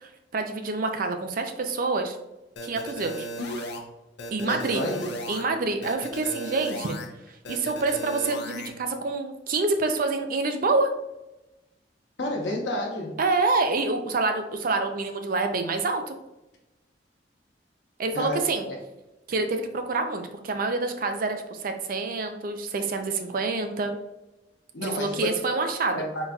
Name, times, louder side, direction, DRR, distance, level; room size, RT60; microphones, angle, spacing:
voice 1, 0.0-2.2 2.6-3.3 3.6-3.7 4.3-4.8 5.3-7.0 7.5-10.9 13.2-16.2 18.0-18.6 19.3-23.9 24.8-26.0, right 3 dB, 50° right, 6 dB, 0.5 m, -27 dB
sound 1, 2.6-3.8 4.2-5.4 5.8-7.1 7.4-8.7, equal, 65° left, 0.6 m, -36 dB
voice 2, 4.4-5.1 12.2-13.2 18.1-18.8 24.7-25.4 25.9-26.3, left 1 dB, 80° left, 0 dB, 1.0 m, -31 dB
3.9 x 3.9 x 2.3 m, 0.96 s
head